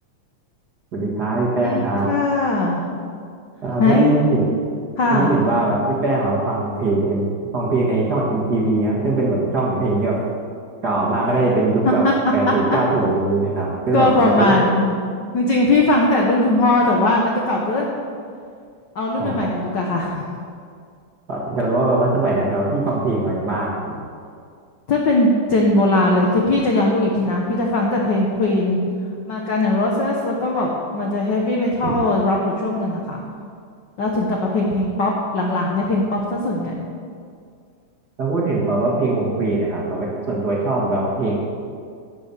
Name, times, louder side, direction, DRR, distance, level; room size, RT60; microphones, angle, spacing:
voice 1, 0.9-2.1 3.6-4.4 5.1-7.2 7.5-10.2 10.8-12.0 12.3-14.6 19.2-19.5 21.3-24.0 31.8-31.9 38.2-41.4, right 2 dB, 40° right, -4 dB, 1.7 m, -21 dB
voice 2, 1.6-2.8 3.8-4.1 5.0-5.4 11.8-12.1 12.5-12.8 13.9-14.9 15.3-17.9 18.9-20.2 24.9-28.8 29.3-33.2 34.0-36.8, left 2 dB, 70° left, -1 dB, 1.0 m, -19 dB
10.5 x 7.0 x 6.9 m, 2.2 s
omnidirectional pair, 3.5 m